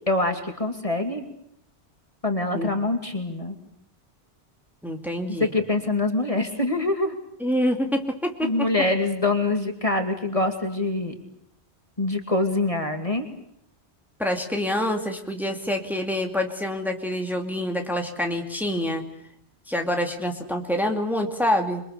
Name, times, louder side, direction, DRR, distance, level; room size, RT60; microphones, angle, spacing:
voice 1, 0.1-1.2 2.2-3.5 5.4-7.2 8.4-11.1 12.0-13.2, left 2 dB, 30° left, 5 dB, 2.5 m, -24 dB
voice 2, 4.8-5.5 7.4-8.7 14.2-19.0 19.7-21.8, left 1 dB, ahead, 3 dB, 2.5 m, -26 dB
28.0 x 23.5 x 6.8 m, 0.72 s
omnidirectional pair, 1.1 m